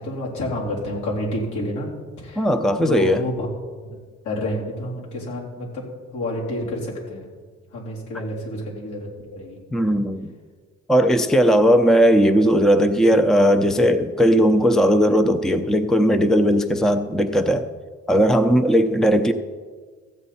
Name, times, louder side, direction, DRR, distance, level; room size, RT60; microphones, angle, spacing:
voice 1, 0.0-1.9 2.2-2.4 2.8-3.5 4.3-7.3 7.7-9.6, left 1 dB, 80° left, -5 dB, 3.7 m, -29 dB
voice 2, 2.4-3.2 9.7-10.3 10.9-17.7 18.1-19.3, equal, ahead, 9 dB, 0.5 m, -17 dB
15.0 x 8.0 x 4.2 m, 1.5 s
cardioid pair, 90°, 30 cm